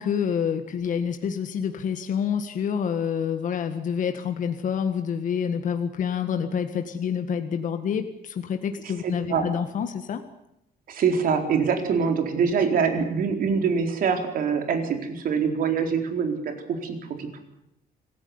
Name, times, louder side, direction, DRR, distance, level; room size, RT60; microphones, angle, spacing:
voice 1, 0.0-10.2, left 7 dB, 55° left, 7 dB, 1.7 m, -27 dB
voice 2, 9.0-9.5 10.9-17.4, right 6 dB, 65° right, 5 dB, 4.2 m, -24 dB
25.5 x 16.0 x 9.8 m, 0.83 s
cardioid pair, 160°, 16 cm